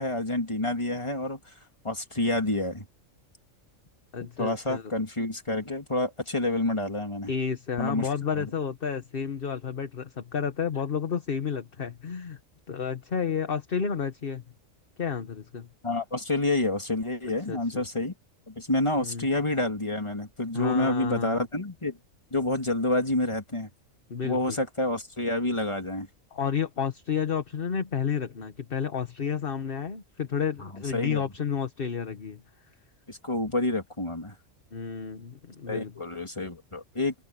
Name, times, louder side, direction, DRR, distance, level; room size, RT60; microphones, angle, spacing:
voice 1, 0.0-1.5 1.8-2.9 4.4-7.3 7.8-8.1 8.4-8.5 15.8-18.1 18.5-22.0 22.3-23.7 24.2-26.1 30.7-31.2 33.1-34.3 35.7-37.1, left 2 dB, 20° left, 3.0 m, -28 dB
voice 2, 4.1-4.9 7.3-12.4 12.7-14.4 15.0-15.7 17.5-17.8 19.0-19.4 20.5-21.5 24.1-24.6 26.3-32.4 34.7-35.9, left 6 dB, 45° left, 1.4 m, -31 dB
open air
omnidirectional pair, 1.4 m